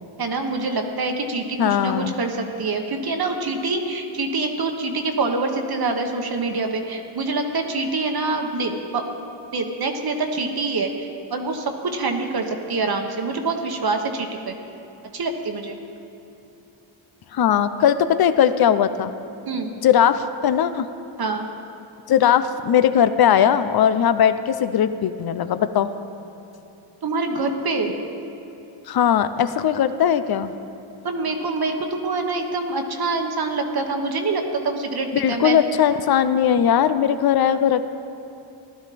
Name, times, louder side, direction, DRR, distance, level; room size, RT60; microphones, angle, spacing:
voice 1, 0.2-9.1 9.5-14.5 15.1-15.8 19.4-19.7 21.2-21.5 27.0-27.9 31.0-35.6, right 3 dB, 50° right, 4 dB, 1.3 m, -25 dB
voice 2, 1.6-2.1 17.3-19.1 19.8-20.9 22.1-25.9 28.9-30.5 35.1-37.8, left 9 dB, 50° left, 12 dB, 0.7 m, -19 dB
15.5 x 12.0 x 4.2 m, 2.9 s
cardioid pair, 80°, 49 cm